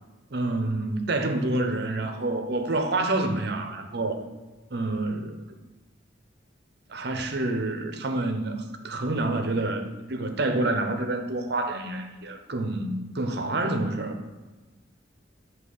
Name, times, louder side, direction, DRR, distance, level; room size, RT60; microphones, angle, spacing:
voice 1, 0.3-4.2 4.7-5.4 6.9-14.2, right 2 dB, 60° right, 5 dB, 0.7 m, -28 dB
8.4 x 2.9 x 5.4 m, 1.2 s
head